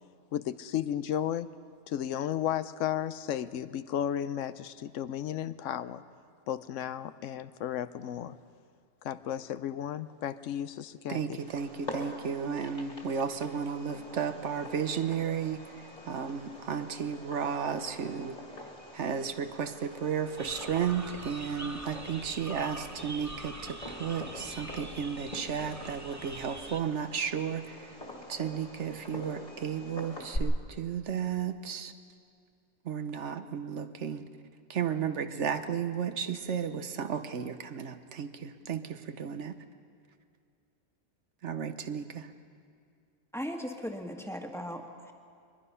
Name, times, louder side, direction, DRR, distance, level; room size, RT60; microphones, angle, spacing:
voice 1, 0.3-1.5 1.9-6.0 6.5-8.4 9.0-11.4, left 10 dB, 85° left, 13 dB, 1.0 m, -34 dB
voice 2, 11.1-15.6 16.1-18.4 18.9-27.8 28.3-31.9 32.8-34.2 34.7-39.5 41.4-42.3, right 7 dB, 70° right, 9 dB, 1.2 m, -33 dB
Fireworks, 11.4-30.4, left 1 dB, 35° left, 2.3 m, -45 dB
sound 1, 20.4-26.8, right 2 dB, 15° right, 0.8 m, -44 dB
voice 3, 43.3-45.1, equal, ahead, 2 dB, 1.5 m, -38 dB
23.0 x 21.5 x 5.6 m, 2.3 s
omnidirectional pair, 1.3 m